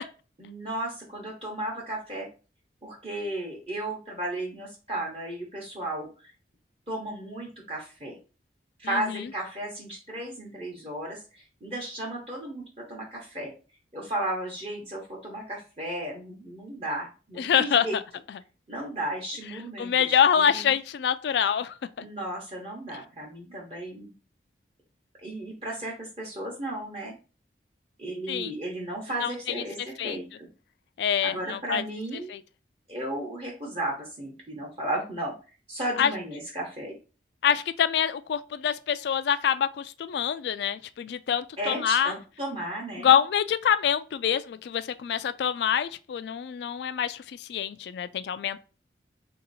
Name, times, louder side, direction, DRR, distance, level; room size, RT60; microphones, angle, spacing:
voice 1, 0.4-2.3 2.8-6.3 6.9-8.2 8.8-13.5 13.9-18.0 18.7-20.7 22.0-24.1 25.2-27.1 28.0-30.5 31.2-32.4 32.9-35.3 35.7-36.9 41.6-43.1, right 1 dB, 35° right, 1.0 m, -34 dB
voice 2, 17.4-17.9 19.8-21.7 28.3-28.5 29.2-29.3 30.0-30.2 31.0-31.8 32.3-32.4 36.0-36.1 37.4-42.1 43.0-47.2 47.5-48.6, left 8 dB, 70° left, 0.3 m, -25 dB
3.5 x 2.8 x 4.0 m
head